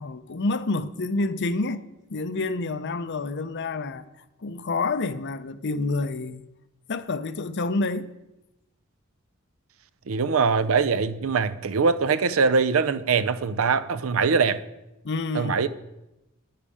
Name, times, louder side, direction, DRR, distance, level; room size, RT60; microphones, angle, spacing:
voice 1, 0.0-1.8 2.1-6.5 6.9-8.1 15.0-15.6, left 3 dB, 55° left, 0.6 m, -28 dB
voice 2, 10.1-14.6 15.3-15.7, right 5 dB, 70° right, 0.5 m, -22 dB
10.5 x 10.0 x 4.9 m
head